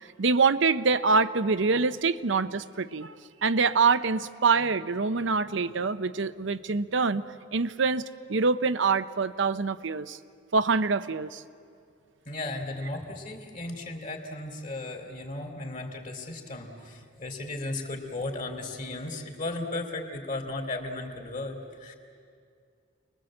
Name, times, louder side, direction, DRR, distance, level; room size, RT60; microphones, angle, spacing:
voice 1, 0.2-3.1 3.4-7.2 7.5-10.2 10.5-11.4, right 4 dB, 60° right, 13 dB, 0.7 m, -25 dB
voice 2, 12.2-22.0, left 2 dB, 40° left, 2 dB, 3.3 m, -35 dB
29.5 x 21.0 x 7.7 m, 2.3 s
head